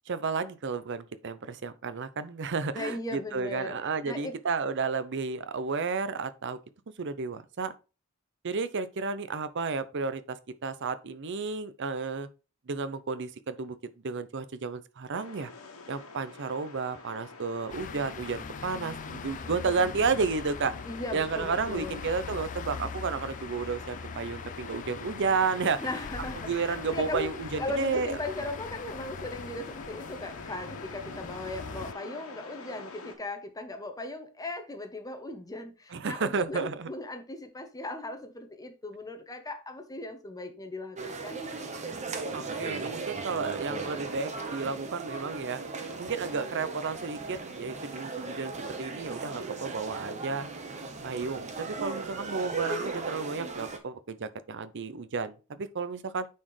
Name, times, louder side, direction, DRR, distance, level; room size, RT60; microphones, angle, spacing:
voice 1, 0.1-6.6 7.0-7.7 8.4-10.4 10.6-12.3 12.7-13.8 14.0-15.5 15.9-20.8 21.1-25.9 26.4-28.2 35.9-36.9 42.3-45.6 46.0-48.5 48.8-50.5 51.0-56.3, right 4 dB, 55° right, 0.6 m, -32 dB
voice 2, 2.7-3.8 4.0-4.3 20.8-22.0 25.8-27.3 27.6-41.5, left 2 dB, 15° left, 0.9 m, -38 dB
sound 1, 15.1-33.1, left 3 dB, 75° left, 1.5 m, -46 dB
sound 2, 17.7-31.9, left 5 dB, 35° left, 0.4 m, -41 dB
sound 3, 41.0-53.8, right 4 dB, 35° right, 1.0 m, -37 dB
9.3 x 4.3 x 3.2 m
head